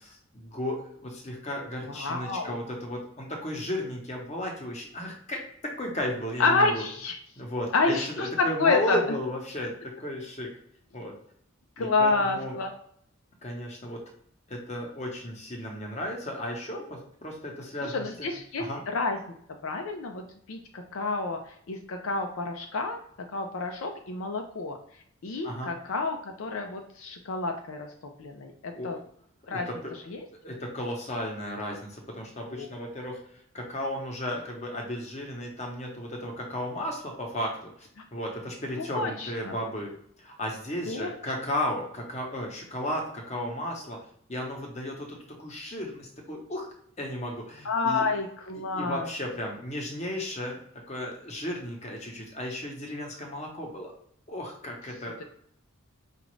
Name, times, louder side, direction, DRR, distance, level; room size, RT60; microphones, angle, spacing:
voice 1, 0.0-6.8 7.4-9.7 10.0-10.5 10.9-11.1 11.8-12.5 13.4-14.0 14.5-18.8 25.4-25.7 28.7-28.9 29.5-29.9 30.4-33.2 33.5-39.9 40.2-44.0 44.3-48.1 48.7-50.6 50.9-53.9 54.3-55.2, left 1 dB, 30° left, 1 dB, 0.9 m, -34 dB
voice 2, 1.9-2.6 6.4-7.1 7.7-9.0 11.8-12.7 17.8-19.2 19.6-20.2 20.5-23.0 23.3-24.8 25.2-27.9 28.2-29.0 29.5-29.7 30.1-30.2 32.5-32.7 38.8-39.5 40.9-41.1 47.6-49.1, left 3 dB, 70° left, 4 dB, 0.5 m, -29 dB
4.9 x 2.4 x 3.1 m, 0.65 s
head